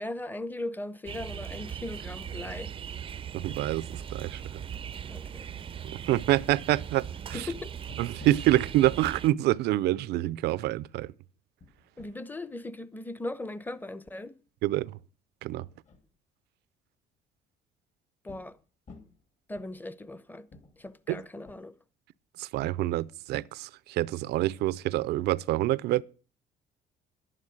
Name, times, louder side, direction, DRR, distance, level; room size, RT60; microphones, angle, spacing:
voice 1, 0.0-2.7 5.1-5.5 7.3-7.7 12.0-14.4 18.2-18.6 19.5-20.5 20.8-21.7, left 2 dB, 10° left, 0.8 m, -38 dB
sound 1, 1.1-9.3, right 8 dB, 30° right, 0.5 m, -39 dB
voice 2, 3.3-3.8 4.1-4.4 6.1-7.4 8.0-11.1 14.6-14.9 15.4-15.6 21.1-21.2 22.4-26.0, right 15 dB, 80° right, 0.5 m, -26 dB
sound 2, 7.3-8.5 8.8-8.9 9.2-9.3 11.6-12.2 14.7-14.9 15.5-16.1 18.3-18.6 18.9-19.2 19.6-20.2 20.5-21.5, left 2 dB, 45° left, 2.8 m, -52 dB
11.5 x 9.8 x 6.4 m
cardioid pair, 110°, 17 cm